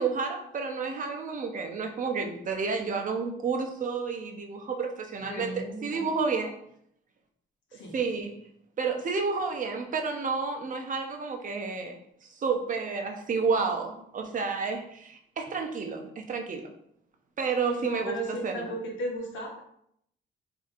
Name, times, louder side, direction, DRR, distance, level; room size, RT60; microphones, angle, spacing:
voice 1, 0.0-6.5 7.9-8.4 8.8-12.0 12.2-16.7 17.4-18.7, right 5 dB, 40° right, 3 dB, 0.6 m, -30 dB
voice 2, 5.2-6.1 7.7-7.9 17.8-19.6, right 1 dB, 70° left, 0 dB, 1.0 m, -35 dB
3.8 x 2.7 x 2.5 m, 0.71 s
cardioid pair, 90°, 20 cm